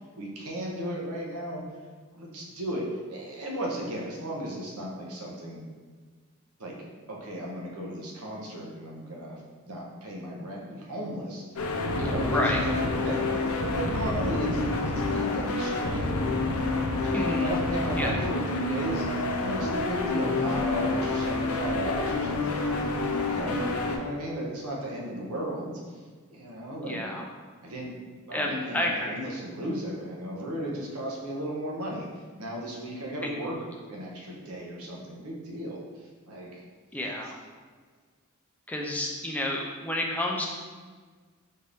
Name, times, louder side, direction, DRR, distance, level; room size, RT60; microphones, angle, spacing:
voice 1, 0.0-1.7 2.1-5.7 6.6-13.4 13.7-16.2 17.0-26.0 26.3-27.2 27.6-32.1 32.4-36.6, right 1 dB, 80° right, -2 dB, 0.8 m, -35 dB
sound 1, 11.6-24.0, left 2 dB, 75° left, 0.5 m, -28 dB
voice 2, 12.3-12.6 17.1-17.5 18.0-18.1 23.5-23.8 26.8-27.2 28.3-29.2 33.2-33.3 36.9-37.4 38.7-40.5, left 1 dB, 5° left, -1 dB, 0.4 m, -30 dB
4.2 x 2.5 x 3.4 m, 1.5 s
head